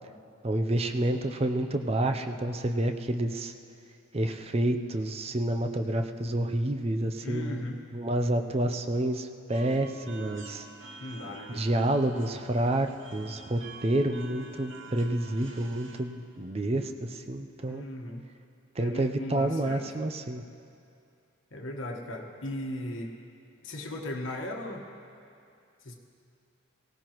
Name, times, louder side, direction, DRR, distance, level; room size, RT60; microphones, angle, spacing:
voice 1, 0.4-3.5 4.1-7.7 7.9-10.7 11.5-17.8 18.8-20.4, right 1 dB, 30° right, 6 dB, 0.5 m, -29 dB
voice 2, 7.2-7.8 11.0-11.6 17.7-18.3 18.8-19.9 21.5-23.2 23.6-24.9 25.8-25.9, left 1 dB, 70° left, 1 dB, 1.3 m, -37 dB
sound 1, 9.5-16.0, right 4 dB, 65° right, 0.9 m, -48 dB
18.5 x 17.0 x 3.0 m, 2.6 s
head